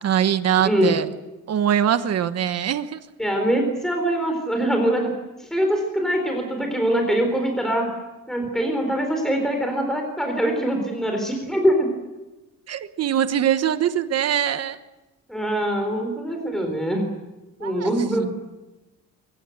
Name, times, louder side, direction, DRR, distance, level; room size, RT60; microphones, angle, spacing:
voice 1, 0.0-1.0 1.5-3.0 12.7-14.8 17.6-17.9, right 9 dB, 50° right, 11 dB, 1.2 m, -22 dB
voice 2, 0.6-0.9 3.2-5.1 5.4-7.9 8.3-11.9 15.3-17.1 17.6-18.3, right 1 dB, ahead, 3 dB, 4.0 m, -23 dB
24.0 x 21.5 x 7.9 m, 1.1 s
cardioid pair, 155°, 32 cm